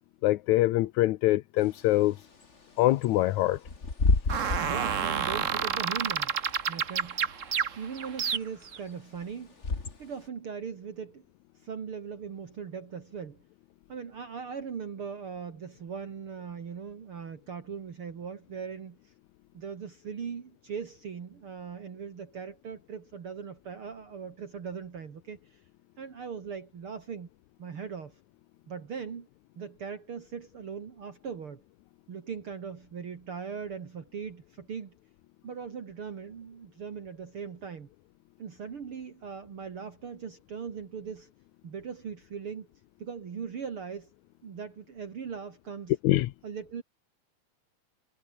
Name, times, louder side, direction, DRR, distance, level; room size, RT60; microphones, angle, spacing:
voice 1, 0.2-2.1 2.8-3.6 46.0-46.3, left 17 dB, 80° left, 2.1 m, -24 dB
Bird / Wind, 1.6-10.3, left 3 dB, 25° left, 2.6 m, -33 dB
voice 2, 4.3-6.3 6.7-7.3 7.8-9.5 10.0-11.2 11.6-13.4 13.9-19.1 19.5-25.6 26.0-27.3 27.6-28.2 28.7-29.3 29.6-31.6 32.1-35.0 35.4-37.9 38.4-41.3 41.6-42.7 43.0-44.1 44.4-45.9 46.4-46.8, right 6 dB, 50° right, 2.8 m, -39 dB
sound 1, 4.3-8.8, right 7 dB, 85° right, 0.6 m, -30 dB
omnidirectional pair, 3.3 m